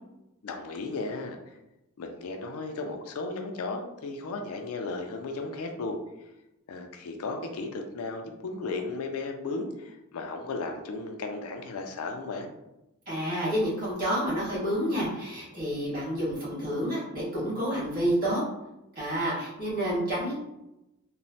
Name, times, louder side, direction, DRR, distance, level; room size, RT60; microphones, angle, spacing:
voice 1, 0.4-1.6 2.0-6.0 6.7-12.5, left 3 dB, 70° left, 4 dB, 0.4 m, -35 dB
voice 2, 13.1-18.4 18.9-20.3, equal, 40° right, -7 dB, 1.4 m, -29 dB
3.0 x 2.1 x 2.6 m, 0.92 s
head